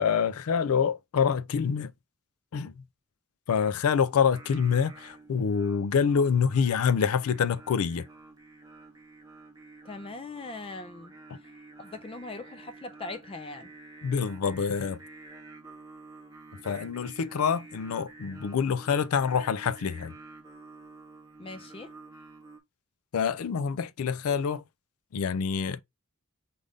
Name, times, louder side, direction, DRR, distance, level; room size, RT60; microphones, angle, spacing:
voice 1, 0.0-1.9 2.5-2.8 3.5-8.1 14.0-15.0 16.6-20.1 23.1-24.6 25.1-25.8, left 6 dB, 85° left, 0.4 m, -26 dB
Singing, 4.3-22.6, right 3 dB, 15° right, 0.8 m, -49 dB
voice 2, 9.8-13.7 21.4-21.9, left 3 dB, 25° left, 0.4 m, -41 dB
5.1 x 2.6 x 3.3 m
head